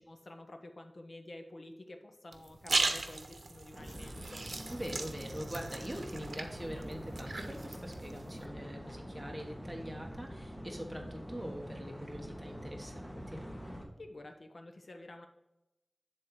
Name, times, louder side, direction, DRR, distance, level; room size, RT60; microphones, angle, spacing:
voice 1, 0.0-4.4 14.0-15.3, left 1 dB, 70° left, 5 dB, 1.0 m, -50 dB
sound 1, 2.3-8.4, right 3 dB, 80° right, 0.7 m, -38 dB
sound 2, 3.7-13.8, equal, 5° left, 1.8 m, -45 dB
voice 2, 4.7-13.4, equal, 10° right, 1 dB, 1.2 m, -43 dB
9.9 x 3.9 x 4.6 m, 0.94 s
wide cardioid pair, 50°, 0 cm